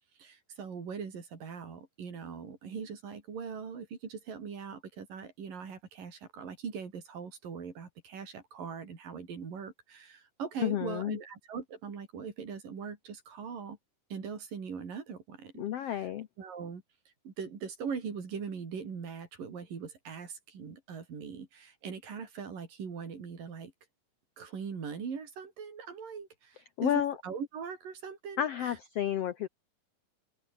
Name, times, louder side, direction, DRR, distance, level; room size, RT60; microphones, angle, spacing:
voice 1, 0.2-13.8 14.1-16.1 16.4-16.8 17.2-23.7 24.4-28.8, right 6 dB, 75° right, 5.8 m, -41 dB
voice 2, 10.6-11.2 15.6-16.3 26.8-27.1 28.4-29.5, left 11 dB, 75° left, 1.4 m, -31 dB
omnidirectional pair, 4.0 m